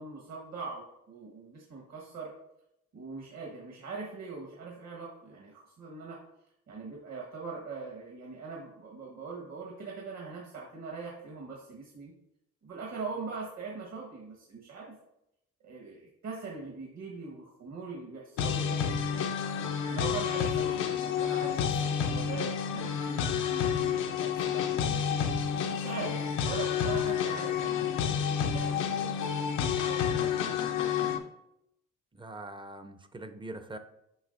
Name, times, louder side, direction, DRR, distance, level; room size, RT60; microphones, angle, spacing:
voice 1, 0.0-2.3 2.9-6.2 6.7-12.1 12.6-15.0 15.6-18.8 19.9-25.2 25.7-27.9 28.4-30.3, right 4 dB, 60° right, -1 dB, 1.4 m, -41 dB
sound 1, 18.4-31.2, left 7 dB, 85° left, 0.7 m, -30 dB
voice 2, 32.1-33.8, right 2 dB, 15° right, 8 dB, 0.5 m, -43 dB
7.9 x 5.1 x 2.6 m, 0.82 s
cardioid pair, 90°, 30 cm